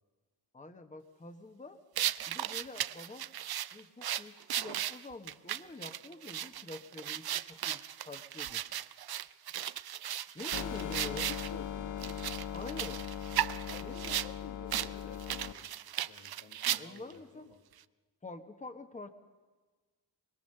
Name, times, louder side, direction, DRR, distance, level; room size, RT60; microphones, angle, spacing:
voice 1, 0.5-1.8 2.3-3.3 3.7-8.6 10.3-11.3 12.5-13.0 13.8-14.2 16.6-17.5 18.2-19.1, left 2 dB, 20° left, 8 dB, 1.3 m, -47 dB
sound 1, 2.0-11.5 12.0-14.3 14.7-14.9 15.2-17.1, right 11 dB, 70° right, 0.6 m, -36 dB
sound 2, 10.5-15.5, left 10 dB, 55° left, 0.6 m, -39 dB
voice 2, 10.6-12.4 13.7-13.9 14.2-15.7 16.1-17.6, left 4 dB, 70° left, 3 dB, 2.5 m, -51 dB
23.5 x 21.5 x 6.7 m, 1.3 s
wide cardioid pair, 125°, 39 cm